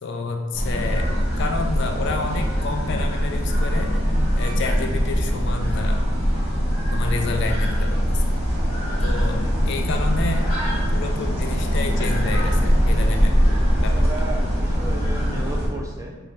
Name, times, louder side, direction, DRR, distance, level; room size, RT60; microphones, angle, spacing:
voice 1, 0.0-4.0 4.4-6.0 6.9-8.3 9.0-10.5 10.9-13.4 13.8-14.0, left 3 dB, 55° left, 4 dB, 0.3 m, -29 dB
sound 1, 0.5-15.7, equal, 30° left, 1.3 m, -22 dB
sound 2, 2.2-3.2 4.2-4.8 5.5-7.0 7.9-8.0, right 1 dB, 85° right, 0.8 m, -46 dB
voice 2, 13.7-16.2, right 3 dB, 15° right, -1 dB, 0.4 m, -34 dB
4.5 x 2.7 x 3.1 m, 1.4 s
head